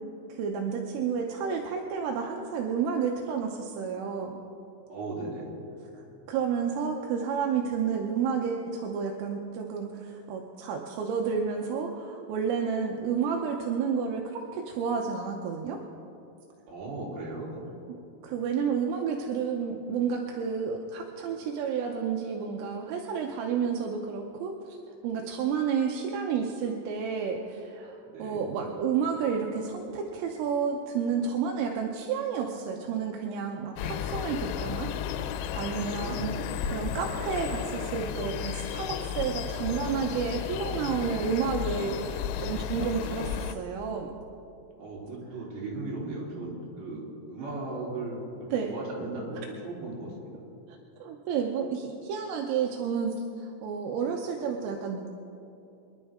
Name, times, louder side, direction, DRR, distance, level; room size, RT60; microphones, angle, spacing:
voice 1, 0.3-4.4 5.9-15.8 17.9-18.0 18.2-24.8 25.0-34.9 35.6-36.3 36.6-44.1 48.5-48.7 50.7-55.1, right 6 dB, 85° right, 1 dB, 3.5 m, -31 dB
voice 2, 4.9-5.5 16.7-17.6 28.1-28.4 35.9-36.5 44.8-50.4, right 2 dB, 60° right, -6 dB, 5.3 m, -37 dB
sound 1, 33.8-43.6, left 9 dB, 85° left, 3.3 m, -33 dB
25.0 x 11.0 x 3.6 m, 2.8 s
omnidirectional pair, 5.7 m